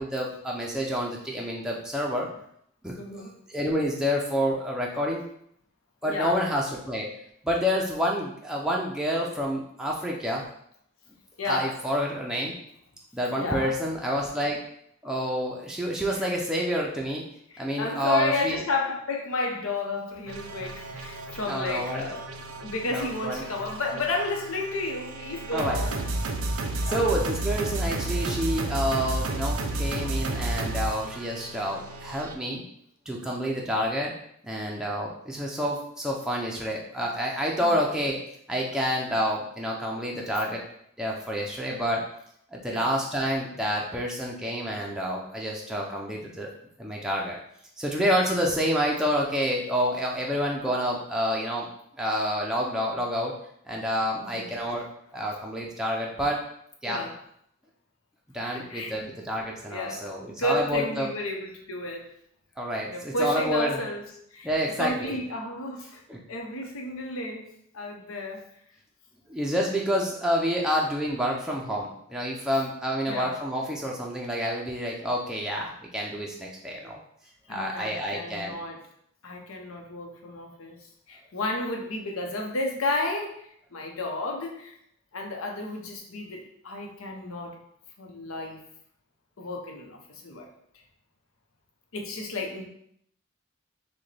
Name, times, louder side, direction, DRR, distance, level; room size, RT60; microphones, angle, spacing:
voice 1, 0.0-2.3 2.8-5.3 6.0-7.1 7.4-10.4 11.5-12.5 13.1-14.6 15.0-17.2 17.6-18.6 21.5-22.1 22.9-23.4 25.5-25.8 26.9-32.6 33.1-34.1 34.4-38.2 38.5-40.6 41.0-42.0 42.5-46.5 46.8-47.4 47.8-51.7 52.0-53.3 53.7-54.9 55.1-56.4 56.8-57.0 58.3-61.1 62.6-63.8 64.4-65.2 66.1-66.2 69.3-77.0 77.5-78.6, equal, 5° right, -3 dB, 0.4 m, -28 dB
voice 2, 3.0-3.4 6.0-6.4 11.4-11.8 13.4-13.8 16.1-16.3 17.5-26.1 26.7-27.1 37.6-37.8 42.7-42.9 54.2-54.8 56.9-57.2 58.5-59.1 59.7-62.1 62.9-64.0 64.3-64.5 64.8-66.0 66.3-67.5 67.7-68.4 73.1-73.4 77.4-78.8 79.2-84.7 85.1-87.6 88.0-88.6 89.4-90.5 91.9-92.7, left 2 dB, 85° left, 1 dB, 0.8 m, -32 dB
sound 1, 20.3-32.3, right 2 dB, 85° right, 0.5 m, -32 dB
6.1 x 2.2 x 3.3 m, 0.70 s
head